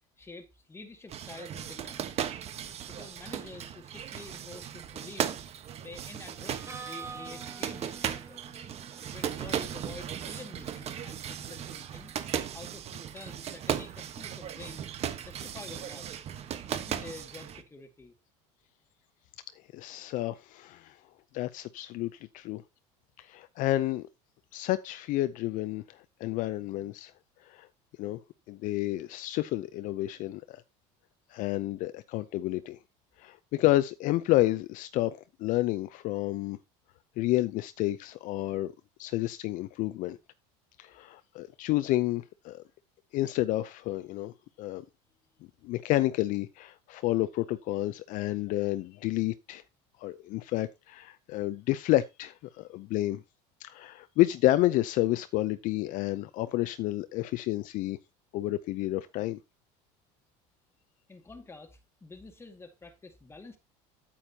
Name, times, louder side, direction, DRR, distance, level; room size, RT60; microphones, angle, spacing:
voice 1, 0.2-2.3 2.9-5.4 5.8-8.5 9.1-12.1 12.5-14.8 15.1-16.1 16.5-18.1 61.1-63.6, left 3 dB, 15° left, 1.9 m, -48 dB
sound 1, 1.1-17.6, right 9 dB, 40° right, 1.2 m, -37 dB
Harmonica, 6.5-12.2, right 4 dB, 15° right, 1.8 m, -48 dB
voice 2, 19.7-21.0 21.3-22.6 23.2-24.1 24.5-27.1 27.4-27.7 28.0-28.2 28.5-30.6 31.3-32.8 33.2-36.6 37.2-38.7 39.0-40.2 40.8-42.6 43.1-44.8 45.6-49.6 50.0-53.2 53.6-58.0 58.3-59.4, left 16 dB, 55° left, 0.6 m, -30 dB
9.0 x 8.6 x 2.8 m
supercardioid pair, 110°, 16 cm